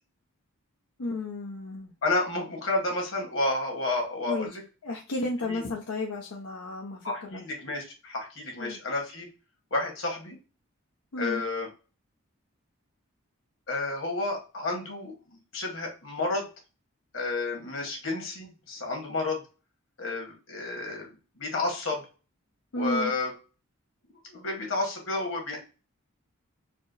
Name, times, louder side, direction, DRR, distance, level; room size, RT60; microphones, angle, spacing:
voice 1, 1.0-1.9 4.2-4.6 4.8-7.4 8.5-8.8 11.1-11.4 22.7-23.1, left 2 dB, 85° left, -1 dB, 0.7 m, -33 dB
voice 2, 2.0-4.6 5.5-5.6 7.0-9.3 9.7-10.4 11.2-11.7 13.7-15.1 15.5-16.5 17.1-19.4 20.0-22.0 22.8-23.3 24.3-25.6, left 2 dB, 70° left, 1 dB, 1.5 m, -31 dB
4.3 x 2.0 x 3.9 m, 0.33 s
head